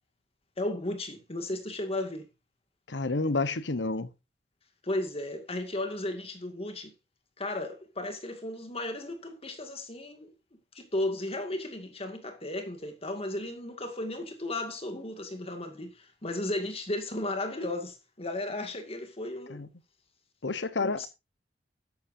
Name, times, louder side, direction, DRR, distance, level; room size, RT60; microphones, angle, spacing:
voice 1, 0.6-2.3 4.8-6.9 7.4-10.3 10.7-19.7 20.8-21.1, left 1 dB, 35° left, 2.1 m, -35 dB
voice 2, 2.9-4.1 19.5-19.7 20.4-21.1, left 3 dB, 85° left, 1.1 m, -29 dB
13.5 x 11.5 x 2.7 m
head